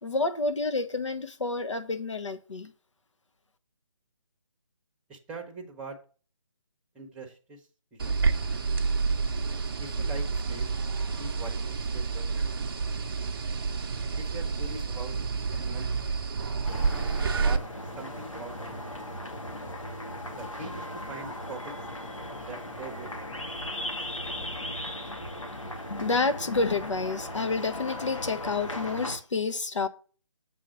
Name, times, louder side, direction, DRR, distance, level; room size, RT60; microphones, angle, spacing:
voice 1, 0.0-2.7 25.9-29.9, left 3 dB, 70° left, 1.2 m, -29 dB
voice 2, 5.1-6.0 6.9-8.2 9.8-10.7 11.2-12.7 14.2-15.2 15.5-15.9 17.3-17.7 18.0-19.0 20.3-21.7 22.4-23.5, right 3 dB, 5° right, 0.9 m, -43 dB
sound 1, 8.0-17.6, right 4 dB, 45° right, 0.7 m, -29 dB
sound 2, 16.6-29.2, left 1 dB, 90° left, 1.9 m, -37 dB
7.5 x 3.6 x 6.6 m
figure-of-eight pair, 150°, 16 cm